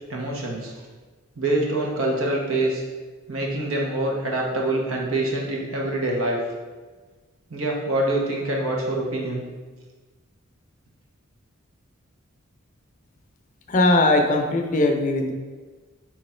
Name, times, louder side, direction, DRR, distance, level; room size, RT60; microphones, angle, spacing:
voice 1, 0.1-0.7 1.4-2.8 3.3-6.4 7.5-9.4, right 2 dB, 90° right, -1 dB, 0.9 m, -25 dB
voice 2, 13.7-15.3, left 2 dB, 40° left, 3 dB, 0.5 m, -19 dB
3.5 x 3.0 x 4.3 m, 1.3 s
head